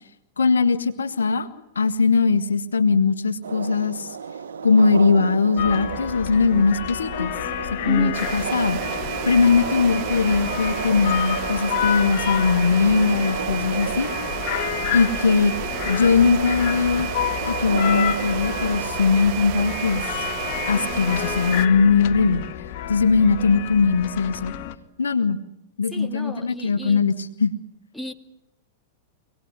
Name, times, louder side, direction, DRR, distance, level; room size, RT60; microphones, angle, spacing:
voice 1, 0.4-1.5 1.7-4.2 4.6-7.3 7.8-8.8 9.2-14.1 14.9-15.5 15.9-17.1 17.5-20.3 20.7-22.4 22.9-24.5 25.0-25.4 25.8-27.5, left 4 dB, 85° left, 11 dB, 1.5 m, -20 dB
sound 1, 3.4-18.8, right 6 dB, 80° right, 1.1 m, -34 dB
sound 2, 5.6-24.7, left 12 dB, 55° left, 1.7 m, -30 dB
voice 2, 7.9-8.2 25.9-27.0 27.9-28.1, equal, 5° left, 4 dB, 2.4 m, -32 dB
sound 3, 8.1-21.7, right 11 dB, 50° right, 1.6 m, -31 dB
25.5 x 19.0 x 9.7 m, 0.87 s
hypercardioid pair, 105°, 0 cm